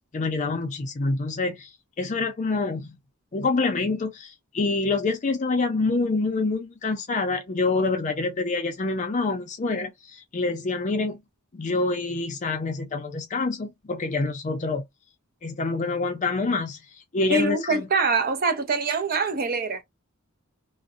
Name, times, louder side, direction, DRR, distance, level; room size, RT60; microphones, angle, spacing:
voice 1, 0.1-3.0 3.3-11.2 11.5-14.8 15.4-16.8 17.1-17.9, left 3 dB, 35° left, 0.4 m, -26 dB
voice 2, 17.3-19.8, right 4 dB, 45° right, 0.6 m, -24 dB
2.6 x 2.1 x 2.4 m
head